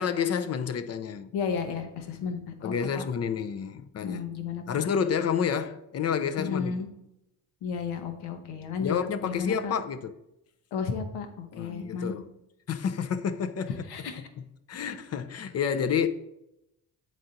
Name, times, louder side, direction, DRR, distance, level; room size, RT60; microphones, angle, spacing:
voice 1, 0.0-1.3 2.6-4.2 4.7-6.7 8.8-10.1 11.5-12.3 12.7-13.8 14.7-16.1, left 7 dB, 40° left, 0.5 m, -29 dB
voice 2, 1.3-3.0 4.0-4.8 6.4-6.9 7.6-9.8 10.7-12.1 13.9-14.2, left 5 dB, 85° left, 1.0 m, -33 dB
7.9 x 4.2 x 3.9 m
cardioid pair, 85°, 39 cm